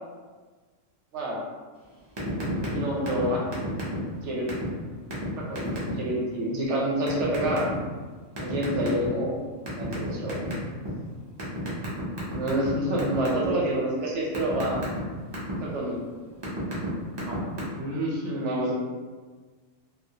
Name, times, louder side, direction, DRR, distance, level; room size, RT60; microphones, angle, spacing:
sound 1, 2.2-2.8 3.1-3.2 3.5-4.2 4.5-4.7 5.1-5.2 5.6-5.9 7.1-7.7 8.4-9.2 9.7-10.9 11.4-12.7 13.0-13.5 13.9-15.5 16.1-16.9 17.1-17.6, right 1 dB, 40° right, 0.3 m, -32 dB
voice 1, 2.7-3.4 4.2-4.5 5.4-7.7 8.4-9.3 9.8-10.4 12.3-14.8 15.6-16.0 17.2-17.4 17.7-18.7, right 1 dB, 70° right, -3 dB, 0.8 m, -28 dB
2.3 x 2.0 x 2.7 m, 1.4 s
omnidirectional pair, 1.4 m